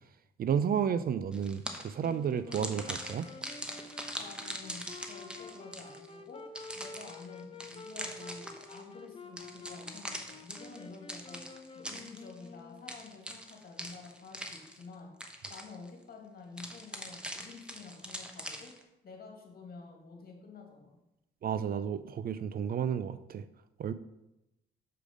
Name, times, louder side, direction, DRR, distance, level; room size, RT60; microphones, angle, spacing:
voice 1, 0.4-3.3 21.4-23.4 23.8-23.9, right 8 dB, 50° right, 13 dB, 0.4 m, -32 dB
sound 1, 1.3-2.1 2.5-6.1 6.5-8.8 9.4-12.5 12.9-14.9 15.2-15.9 16.6-18.8, equal, 5° right, 1.0 m, -42 dB
Wind instrument woodwind instrument, 2.0-13.1, left 4 dB, 25° left, 0.7 m, -49 dB
voice 2, 4.2-15.1 15.5-18.7 19.0-21.0, left 4 dB, 50° left, 1 dB, 2.1 m, -50 dB
6.7 x 5.0 x 5.1 m, 0.92 s
cardioid pair, 90°, 20 cm